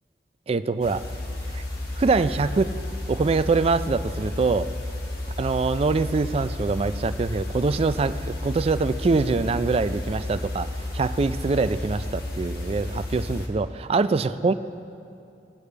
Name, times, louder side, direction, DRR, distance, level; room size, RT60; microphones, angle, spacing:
voice 1, 0.5-1.0 1.5-1.6 2.0-2.7 3.1-4.7 5.4-14.5, right 4 dB, 35° right, 12 dB, 0.3 m, -24 dB
sound 1, 0.8-13.5, left 1 dB, 60° left, 1.6 m, -32 dB
20.0 x 8.2 x 3.4 m, 2.6 s
head